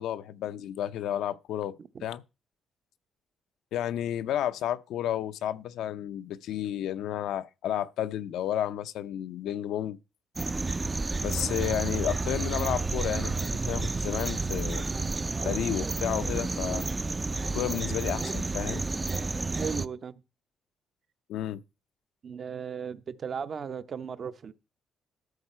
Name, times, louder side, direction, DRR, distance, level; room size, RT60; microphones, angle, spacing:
voice 1, 0.0-2.2 3.7-10.0 11.2-14.9 15.4-16.8 17.5-18.9 21.3-21.6, left 11 dB, 85° left, 0.6 m, -32 dB
sound 1, 10.4-19.9, right 3 dB, 25° right, 0.4 m, -30 dB
voice 2, 19.5-20.1 22.2-24.5, right 6 dB, 50° right, 0.8 m, -36 dB
13.0 x 6.6 x 4.3 m
cardioid pair, 90°, 0 cm